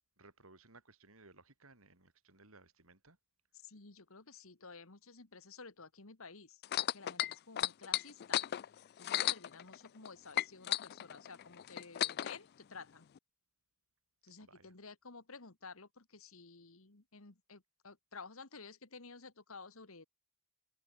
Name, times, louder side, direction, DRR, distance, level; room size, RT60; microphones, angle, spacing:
voice 1, 0.2-3.2 14.4-14.7, right 3 dB, 65° right, 4.8 m, -61 dB
voice 2, 3.6-6.6 6.9-8.4 9.0-13.0 14.2-20.1, left 4 dB, 65° left, 1.9 m, -53 dB
sound 1, 6.6-10.1 10.3-12.4 13.2-13.3, left 13 dB, 45° left, 0.3 m, -34 dB
head